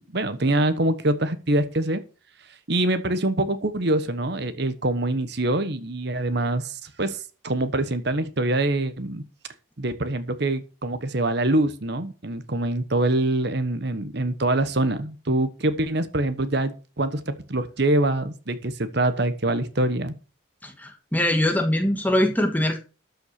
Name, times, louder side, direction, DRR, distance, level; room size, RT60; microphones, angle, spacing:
voice 1, 0.0-2.0 2.7-9.2 9.8-20.1, right 2 dB, 55° right, 11 dB, 1.1 m, -24 dB
voice 2, 20.6-22.8, left 1 dB, 10° left, 5 dB, 1.6 m, -22 dB
13.0 x 5.8 x 6.5 m, 0.34 s
head